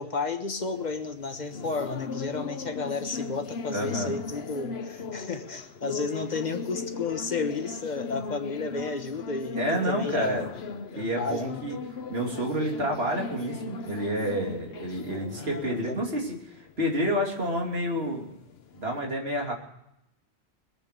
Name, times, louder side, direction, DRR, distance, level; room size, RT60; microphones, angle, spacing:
voice 1, 0.0-10.4 10.9-11.6 15.4-16.0, left 4 dB, 45° left, 7 dB, 1.4 m, -32 dB
sound 1, 0.6-19.0, left 5 dB, 70° left, 1.1 m, -38 dB
voice 2, 3.7-4.1 9.6-10.4 10.9-11.8 12.1-18.3 18.7-19.5, equal, 65° right, 0 dB, 3.1 m, -29 dB
21.5 x 8.3 x 6.7 m, 0.81 s
omnidirectional pair, 1.1 m